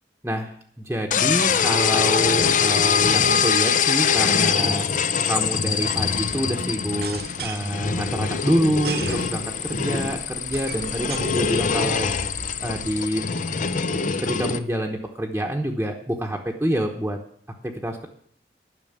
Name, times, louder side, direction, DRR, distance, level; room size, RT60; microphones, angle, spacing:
voice 1, 0.2-4.9 5.3-12.1 12.6-13.2 14.0-17.2 17.6-18.1, equal, 10° right, 0 dB, 1.0 m, -27 dB
sound 1, 1.1-14.6, left 6 dB, 45° left, 0.6 m, -23 dB
sound 2, 6.9-13.0, right 5 dB, 60° right, 0.7 m, -38 dB
11.0 x 6.3 x 8.7 m, 0.66 s
head